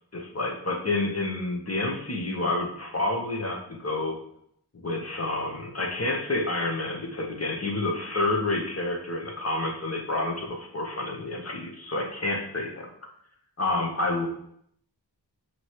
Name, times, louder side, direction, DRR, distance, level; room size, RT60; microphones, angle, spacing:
voice 1, 0.1-4.2 4.8-12.9 13.6-14.3, left 2 dB, 35° left, 0 dB, 1.1 m, -29 dB
5.2 x 3.0 x 3.0 m, 0.69 s
wide cardioid pair, 65°, 41 cm